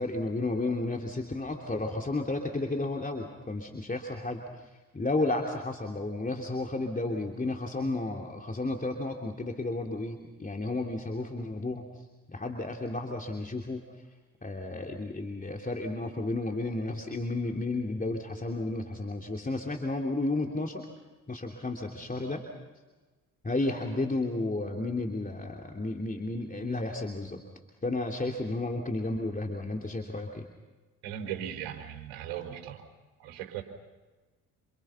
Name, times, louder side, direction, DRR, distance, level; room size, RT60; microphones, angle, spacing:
voice 1, 0.0-4.4 4.9-11.8 12.3-13.8 14.4-20.8 21.3-22.5 23.4-27.4 27.8-30.5, left 2 dB, 20° left, 1 dB, 3.3 m, -32 dB
voice 2, 31.0-32.8 33.2-33.6, right 10 dB, 70° right, 3 dB, 4.4 m, -38 dB
28.0 x 27.5 x 5.9 m, 1.2 s
hypercardioid pair, 50°, 42 cm